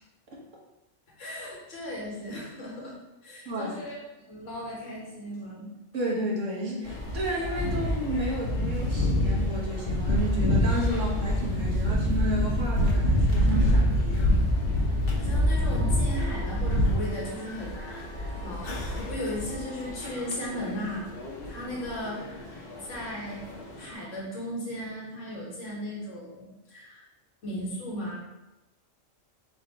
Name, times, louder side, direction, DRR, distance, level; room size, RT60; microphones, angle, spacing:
voice 1, 1.2-2.9 3.2-5.7 10.9-11.0 15.2-23.5 23.8-27.0 27.4-28.2, equal, 70° left, -3 dB, 1.5 m, -36 dB
voice 2, 3.5-3.8 5.9-14.3, equal, 70° right, -3 dB, 1.4 m, -32 dB
sound 1, 6.8-23.9, left 1 dB, 50° left, 1.1 m, -27 dB
4.4 x 2.7 x 4.4 m, 0.97 s
omnidirectional pair, 1.4 m